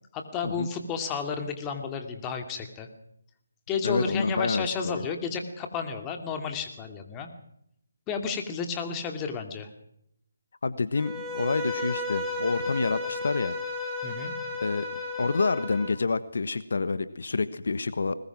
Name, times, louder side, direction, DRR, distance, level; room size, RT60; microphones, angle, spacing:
voice 1, 0.1-2.9 3.7-7.3 8.1-9.7 14.0-14.3, left 5 dB, 15° left, 5 dB, 2.4 m, -32 dB
voice 2, 3.8-5.0 10.6-13.5 14.6-14.9 15.2-18.1, left 4 dB, 65° left, 14 dB, 1.3 m, -28 dB
Bowed string instrument, 11.0-15.9, left 2 dB, ahead, 3.9 m, -33 dB
21.5 x 20.0 x 6.1 m, 0.75 s
figure-of-eight pair, 160°, 0 cm